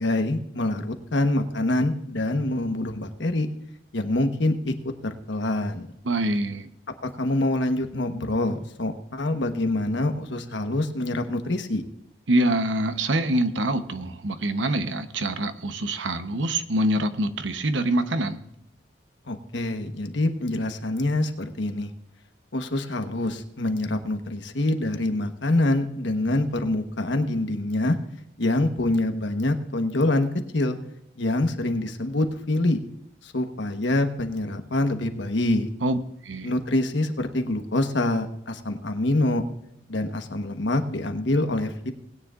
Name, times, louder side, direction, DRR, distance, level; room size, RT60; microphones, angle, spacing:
voice 1, 0.0-3.5 3.9-5.9 7.2-11.8 19.3-21.9 22.5-28.0 28.4-30.3 30.5-30.8 31.2-32.8 33.2-35.7 36.4-39.4 39.9-41.9, left 2 dB, 80° left, 6 dB, 1.2 m, -25 dB
voice 2, 6.0-6.7 12.3-18.4 35.8-36.0 36.2-36.5, right 1 dB, 85° right, 10 dB, 0.9 m, -25 dB
20.0 x 9.7 x 2.5 m, 0.79 s
head